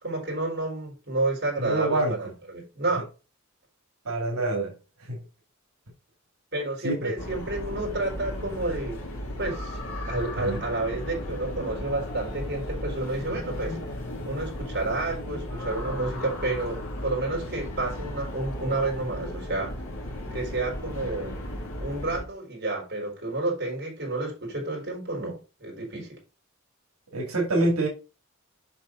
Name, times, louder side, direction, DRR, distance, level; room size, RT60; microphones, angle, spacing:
voice 1, 0.0-3.1 6.5-9.0 9.4-9.8 10.1-13.8 14.3-19.7 20.3-21.4 21.7-26.2, right 2 dB, 50° right, 4.0 m, -30 dB
voice 2, 1.6-2.2 4.0-4.7 5.0-5.2 6.8-7.1 10.4-10.6 27.1-27.9, right 2 dB, 85° right, 2.7 m, -26 dB
sound 1, 7.2-22.2, left 1 dB, 70° left, 2.4 m, -35 dB
7.3 x 5.7 x 3.9 m
head